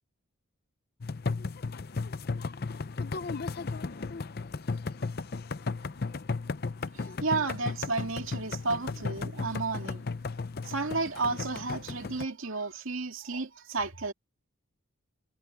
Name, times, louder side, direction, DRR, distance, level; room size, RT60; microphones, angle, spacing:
sound 1, 1.0-12.3, left 4 dB, 45° left, 0.6 m, -35 dB
voice 1, 7.2-10.0 10.6-14.1, right 3 dB, 75° right, 2.3 m, -32 dB
head